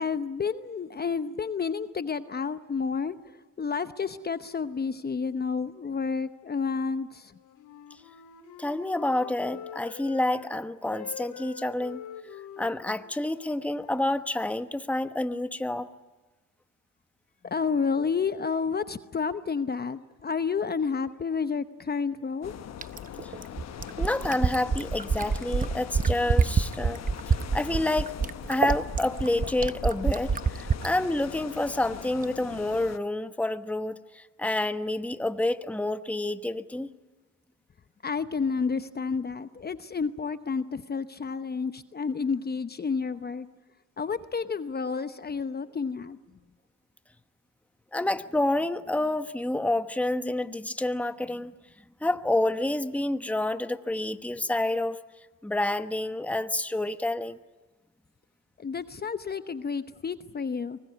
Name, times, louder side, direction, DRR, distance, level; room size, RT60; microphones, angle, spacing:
voice 1, 0.0-3.2 3.6-7.3 17.4-22.5 38.0-43.5 44.0-46.2 58.6-60.8, left 5 dB, 30° left, 11 dB, 0.9 m, -30 dB
Wind instrument woodwind instrument, 7.2-10.5 10.8-14.6, left 8 dB, 85° left, 2.4 m, -45 dB
voice 2, 8.6-12.0 12.6-15.9 23.2-23.3 24.0-27.0 27.5-36.9 47.9-51.5 52.0-55.0 55.4-57.4, left 1 dB, 5° left, 10 dB, 1.1 m, -28 dB
sound 1, 22.4-33.0, left 10 dB, 60° left, 1.1 m, -41 dB
Fill (with liquid), 22.8-30.9 32.2-32.3, right 5 dB, 30° right, 0.8 m, -26 dB
24.0 x 20.0 x 9.5 m, 1.2 s
cardioid pair, 90°, 30 cm